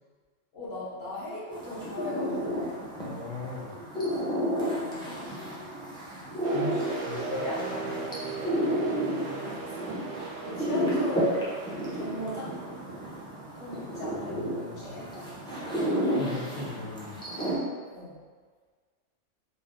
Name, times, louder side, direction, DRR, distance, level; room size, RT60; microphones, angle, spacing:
voice 1, 0.5-3.0 3.6-3.9 4.8-5.9 6.8-8.2 8.7-9.0 9.6-9.9 10.4-11.5 11.9-12.6 13.5-15.7 17.9-18.2, left 1 dB, 55° left, -9 dB, 1.4 m, -39 dB
sound 1, 1.5-17.6, equal, 5° left, 0.4 m, -32 dB
voice 2, 3.0-3.7 6.5-7.3 14.0-14.9 16.2-17.2, left 3 dB, 85° left, -5 dB, 1.0 m, -38 dB
sound 2, 6.4-14.0, right 4 dB, 85° right, 1.0 m, -38 dB
4.0 x 2.0 x 3.6 m, 1.5 s
omnidirectional pair, 1.3 m